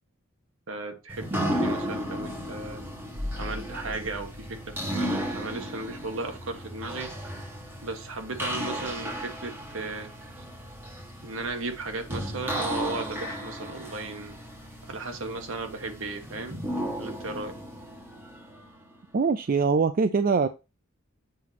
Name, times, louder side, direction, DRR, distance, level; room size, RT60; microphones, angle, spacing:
voice 1, 0.7-2.8 3.4-7.1 7.8-10.1 11.2-14.3 14.9-16.6 17.0-17.5, right 3 dB, 65° right, 1.3 m, -35 dB
sound 1, 1.1-18.9, equal, 10° right, 1.4 m, -34 dB
voice 2, 19.1-20.5, right 5 dB, 40° right, 0.4 m, -23 dB
7.6 x 3.0 x 5.8 m
head